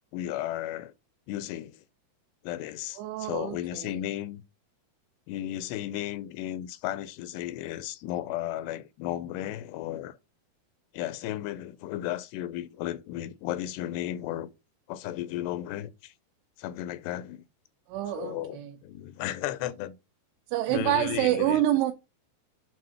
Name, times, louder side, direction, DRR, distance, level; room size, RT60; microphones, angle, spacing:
voice 1, 0.1-0.9 1.3-1.8 2.4-4.4 5.3-10.2 10.9-14.5 14.9-16.1 16.6-17.4 18.1-20.0 20.7-21.6, left 13 dB, 85° left, 2.5 m, -34 dB
voice 2, 3.0-4.0 17.9-18.8 20.5-21.9, right 13 dB, 85° right, 2.8 m, -27 dB
7.5 x 2.7 x 5.6 m
omnidirectional pair, 4.8 m